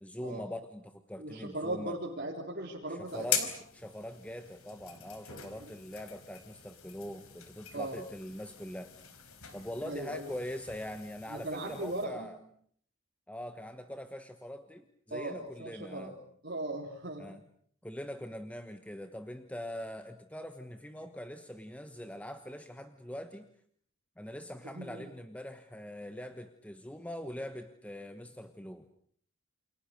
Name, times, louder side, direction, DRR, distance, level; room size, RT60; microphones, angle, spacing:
voice 1, 0.0-1.9 2.9-3.5 3.7-8.9 9.5-12.4 13.3-16.1 17.2-17.4 17.8-23.5 24.2-28.9, equal, 5° left, 8 dB, 1.2 m, -42 dB
voice 2, 1.2-3.5 5.6-5.7 7.7-8.0 9.8-10.3 11.3-12.3 15.1-16.1 16.4-17.3 24.7-25.1, right 1 dB, 45° right, -2 dB, 3.8 m, -38 dB
sound 1, 3.1-12.1, left 8 dB, 70° left, 4.7 m, -41 dB
29.5 x 28.0 x 6.6 m, 0.62 s
head